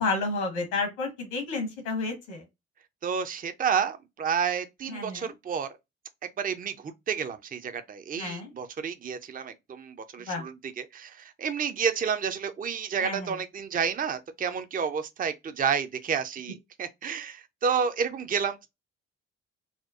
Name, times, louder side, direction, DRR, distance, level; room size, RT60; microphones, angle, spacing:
voice 1, 0.0-2.4 4.9-5.3 8.2-8.5 10.3-10.4 13.0-13.3, left 3 dB, 75° left, 1.6 m, -31 dB
voice 2, 3.0-5.7 6.4-18.7, right 6 dB, 25° right, 0.6 m, -30 dB
4.3 x 2.2 x 2.5 m
figure-of-eight pair, 45°, 36 cm